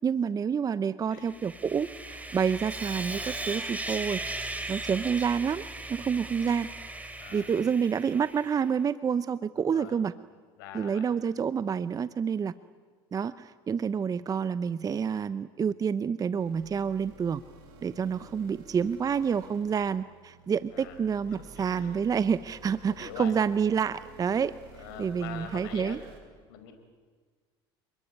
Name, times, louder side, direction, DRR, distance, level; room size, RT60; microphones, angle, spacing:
voice 1, 0.0-4.2 4.7-6.7 7.3-10.1 10.7-12.5 13.1-17.4 17.8-24.6 25.0-26.0, right 7 dB, 30° right, 15 dB, 0.8 m, -28 dB
voice 2, 1.1-1.4 7.2-7.5 9.6-10.0 10.6-11.1 18.0-18.4 20.7-21.0 21.3-22.0 22.9-23.3 24.8-26.0 26.5-26.7, left 9 dB, 80° left, 6 dB, 5.3 m, -44 dB
Sawing, 1.2-8.6, right 2 dB, 10° right, 3.8 m, -38 dB
sound 1, 16.4-26.2, right 3 dB, 75° right, 7.3 m, -51 dB
29.0 x 21.5 x 9.5 m, 1.5 s
supercardioid pair, 90°, 12 cm